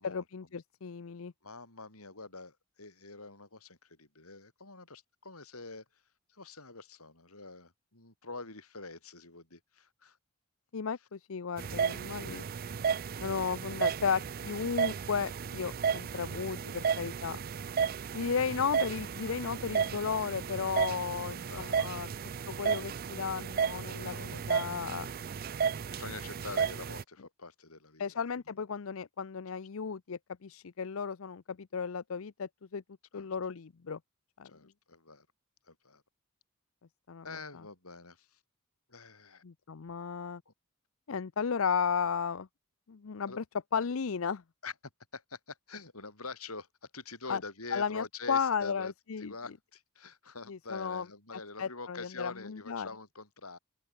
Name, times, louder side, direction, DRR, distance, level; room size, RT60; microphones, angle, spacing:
voice 1, 0.0-1.3 10.7-12.4 13.2-17.4 18.1-22.1 22.5-25.1 28.0-32.8 33.1-34.0 34.4-34.5 37.1-37.2 39.4-40.4 41.1-42.5 42.9-43.4 43.7-44.4 47.3-47.4 47.7-49.3 50.5-51.0 51.6-52.9, left 6 dB, 70° left, 0.6 m, -34 dB
voice 2, 1.4-6.0 6.3-10.2 12.3-12.4 21.5-22.2 24.0-24.8 25.5-25.6 25.9-28.2 33.1-33.3 34.5-35.3 35.7-36.0 37.2-38.4 38.9-39.4 40.5-40.6 43.3-43.4 44.6-44.7 45.1-53.6, left 3 dB, 90° left, 8.0 m, -46 dB
sound 1, 11.6-27.0, right 6 dB, 45° right, 0.4 m, -33 dB
open air
head